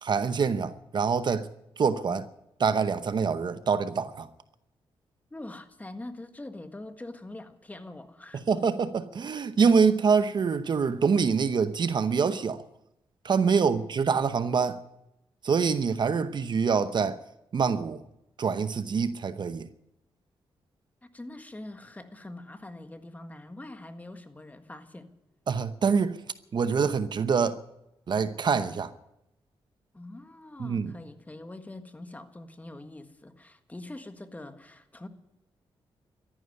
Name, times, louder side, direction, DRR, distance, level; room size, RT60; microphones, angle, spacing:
voice 1, 0.0-1.5 1.8-2.2 2.6-4.3 8.5-12.6 13.2-14.8 15.4-17.2 17.5-18.0 18.4-19.7 25.5-26.2 26.5-27.6 28.1-28.9 30.6-30.9, right 5 dB, 55° right, 0.8 m, -25 dB
voice 2, 5.3-8.5 13.5-13.9 21.0-25.1 29.9-35.1, left 2 dB, 15° left, 1.7 m, -43 dB
13.5 x 11.0 x 9.6 m
cardioid pair, 80°, 9 cm